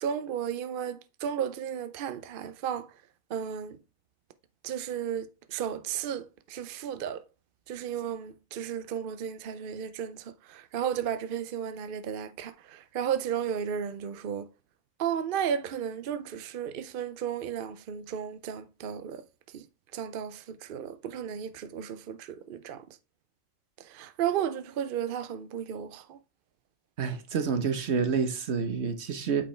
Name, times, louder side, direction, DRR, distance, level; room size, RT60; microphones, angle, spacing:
voice 1, 0.0-2.9 3.3-3.8 4.6-7.2 7.7-14.5 15.0-19.2 19.5-19.6 19.9-22.8 23.8-26.2, right 8 dB, 70° right, 0.5 m, -34 dB
voice 2, 27.0-29.5, right 5 dB, 50° right, 1.2 m, -28 dB
8.5 x 5.3 x 3.3 m
omnidirectional pair, 1.5 m